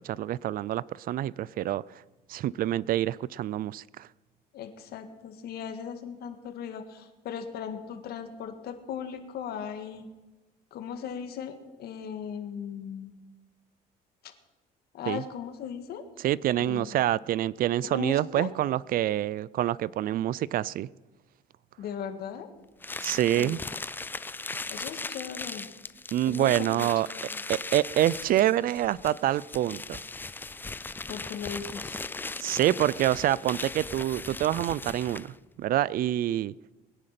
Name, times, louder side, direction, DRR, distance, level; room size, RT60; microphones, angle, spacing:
voice 1, 0.0-1.8 2.3-4.1 15.1-15.2 16.2-20.9 23.0-23.6 26.1-27.1 27.5-30.0 32.4-36.5, right 13 dB, 60° right, 22 dB, 0.4 m, -26 dB
voice 2, 4.5-10.1 10.7-13.1 14.2-14.3 14.9-16.0 16.5-16.9 17.9-18.5 21.8-22.5 23.3-23.6 24.7-25.7 26.2-27.4 31.1-32.0, left 8 dB, 70° left, 8 dB, 1.8 m, -38 dB
sound 1, 22.8-35.4, left 3 dB, 10° left, 0.4 m, -38 dB
21.0 x 10.0 x 5.9 m, 1.2 s
cardioid pair, 110°, 17 cm